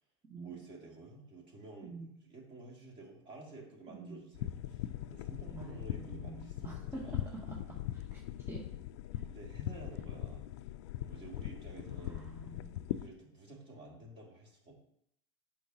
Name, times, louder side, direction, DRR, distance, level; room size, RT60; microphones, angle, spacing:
voice 1, 0.4-7.3 9.2-10.5 11.1-12.3 12.9-14.7, right 2 dB, 35° right, -1 dB, 2.7 m, -51 dB
sound 1, 4.3-13.1, left 13 dB, 70° left, 0.4 m, -41 dB
voice 2, 5.5-8.2 8.5-8.6 9.1-9.2 12.0-12.8, right 3 dB, 15° right, -1 dB, 1.2 m, -47 dB
8.3 x 5.8 x 3.0 m, 0.68 s
hypercardioid pair, 110°, 15 cm